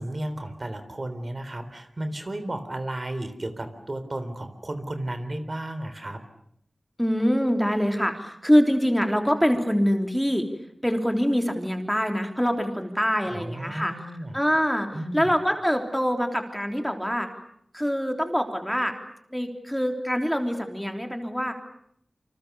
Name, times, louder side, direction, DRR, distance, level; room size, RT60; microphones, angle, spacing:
voice 1, 0.0-6.2 13.3-14.4 14.9-15.2, right 1 dB, 45° right, 9 dB, 3.6 m, -33 dB
voice 2, 7.0-10.5 10.8-14.1 14.3-17.3 17.7-18.9 19.3-21.5, equal, ahead, 4 dB, 3.4 m, -24 dB
29.0 x 26.0 x 6.9 m, 0.69 s
wide cardioid pair, 65°, 0 cm